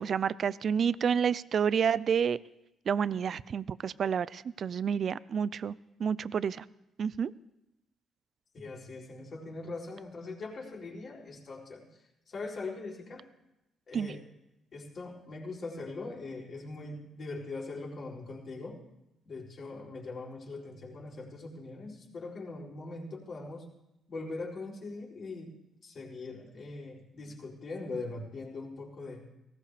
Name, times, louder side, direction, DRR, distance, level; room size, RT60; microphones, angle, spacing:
voice 1, 0.0-2.4 2.9-5.7 6.0-6.6 7.0-7.3 13.9-14.1, right 7 dB, 55° right, 18 dB, 0.4 m, -29 dB
voice 2, 8.5-11.8 12.3-13.2 13.9-14.2 14.7-18.8 19.2-23.7 24.1-25.5 25.8-29.2, left 3 dB, 50° left, -3 dB, 4.6 m, -41 dB
19.0 x 17.5 x 3.4 m, 0.90 s
cardioid pair, 90°, 0 cm